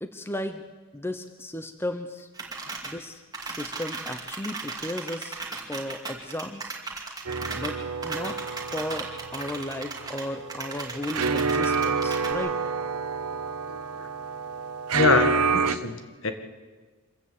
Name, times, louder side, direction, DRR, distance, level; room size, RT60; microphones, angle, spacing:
voice 1, 0.0-0.6 0.9-2.3 2.8-5.4 5.7-6.8 7.5-8.4 8.7-12.6, left 1 dB, 10° left, 8 dB, 0.8 m, -35 dB
sound 1, 2.3-2.9 3.3-10.2 10.5-12.3, right 4 dB, 15° right, 2.4 m, -36 dB
sound 2, 7.3-15.8, right 5 dB, 90° right, 1.0 m, -28 dB
voice 2, 13.7-14.1 14.9-16.3, left 4 dB, 60° left, 8 dB, 1.7 m, -25 dB
25.5 x 14.5 x 8.5 m, 1.4 s
head